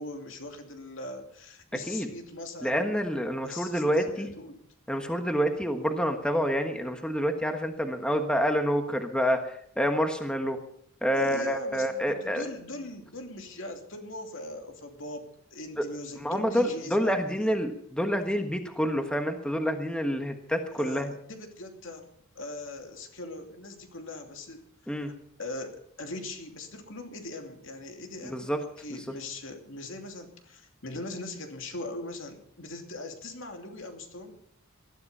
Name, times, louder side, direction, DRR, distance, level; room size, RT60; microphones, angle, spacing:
voice 1, 0.0-3.0 3.4-4.6 11.2-17.7 20.8-25.1 25.4-34.4, left 2 dB, 65° left, 4 dB, 2.7 m, -41 dB
voice 2, 2.6-4.3 4.9-9.4 9.8-10.6 11.0-12.4 15.8-15.9 16.2-21.1 24.9-25.1 28.3-28.6, equal, 5° left, 5 dB, 1.3 m, -27 dB
20.0 x 13.0 x 5.5 m, 0.68 s
head